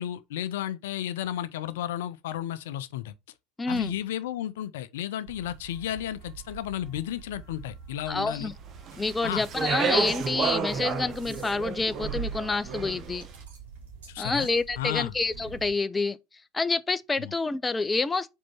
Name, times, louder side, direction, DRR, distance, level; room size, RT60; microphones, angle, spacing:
voice 1, 0.0-3.1 3.7-8.5 9.2-9.4 14.1-14.5 14.8-15.1 17.2-17.3, left 11 dB, 60° left, 0.5 m, -33 dB
voice 2, 3.6-4.0 8.1-8.5 9.0-13.3 14.2-16.2 16.5-18.3, left 3 dB, 15° left, 0.5 m, -28 dB
sound 1, 5.3-15.7, right 7 dB, 55° right, 3.3 m, -44 dB
Speech, 8.9-13.2, right 5 dB, 35° right, 1.2 m, -31 dB
sound 2, 9.4-9.8 11.1-11.6 13.0-14.6, right 4 dB, 70° right, 2.8 m, -52 dB
5.1 x 4.6 x 5.4 m
figure-of-eight pair, 80°, 0 cm